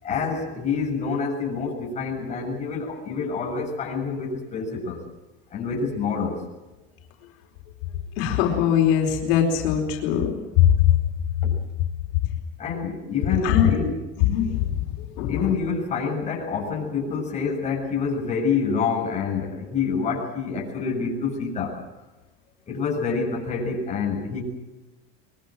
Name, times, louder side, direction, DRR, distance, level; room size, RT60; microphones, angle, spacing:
voice 1, 0.0-5.0 5.5-6.4 11.4-11.5 12.6-14.0 15.3-21.8 22.7-24.4, left 5 dB, 25° left, 0 dB, 7.1 m, -27 dB
voice 2, 8.2-11.0 13.4-13.7 14.2-15.5, left 10 dB, 70° left, 1 dB, 4.4 m, -21 dB
24.0 x 22.5 x 7.7 m, 1.1 s
cardioid pair, 160°, 29 cm